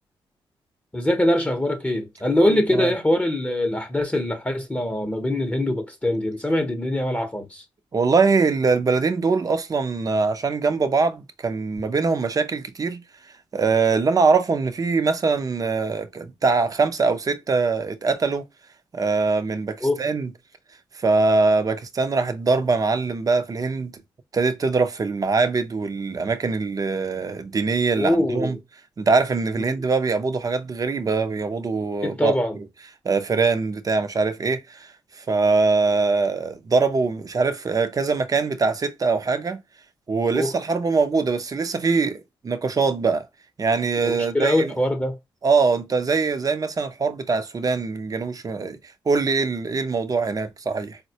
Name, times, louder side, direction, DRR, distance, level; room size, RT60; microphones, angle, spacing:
voice 1, 0.9-7.6 19.8-20.0 28.0-28.5 32.0-32.6 40.3-40.5 44.0-45.2, left 1 dB, 15° left, 0.7 m, -23 dB
voice 2, 2.4-2.9 7.9-13.0 13.5-18.4 18.9-20.3 20.9-24.0 24.3-28.6 29.0-32.3 33.0-39.6 40.1-43.3 43.6-44.8 45.4-48.8 49.1-51.0, right 4 dB, 40° right, 0.6 m, -22 dB
3.9 x 2.1 x 2.7 m
cardioid pair, 75°, 10 cm